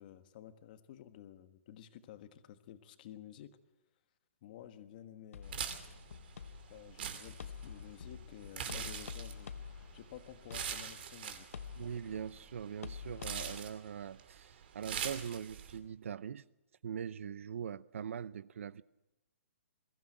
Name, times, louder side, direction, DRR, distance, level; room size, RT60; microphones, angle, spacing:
voice 1, 0.0-3.6 4.4-6.1 6.7-11.6, left 10 dB, 35° left, 1.4 m, -53 dB
sound 1, 5.3-13.6, left 6 dB, 75° left, 1.2 m, -48 dB
sound 2, 5.4-15.8, right 8 dB, 45° right, 2.5 m, -44 dB
voice 2, 11.8-16.4 16.8-18.8, right 8 dB, 65° right, 0.7 m, -42 dB
22.0 x 15.5 x 7.9 m
hypercardioid pair, 165°, 8 cm